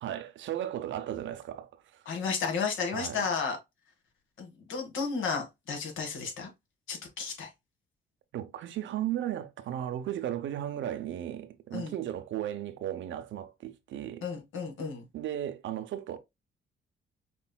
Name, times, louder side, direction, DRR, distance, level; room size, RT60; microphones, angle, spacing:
voice 1, 0.0-2.0 2.9-3.3 8.3-14.2 15.1-16.2, right 11 dB, 70° right, 0.7 m, -35 dB
voice 2, 2.1-3.6 4.4-6.5 6.9-7.5 11.7-11.9 14.2-15.1, left 5 dB, 80° left, 1.7 m, -33 dB
6.0 x 3.3 x 2.2 m
cardioid pair, 90°, 20 cm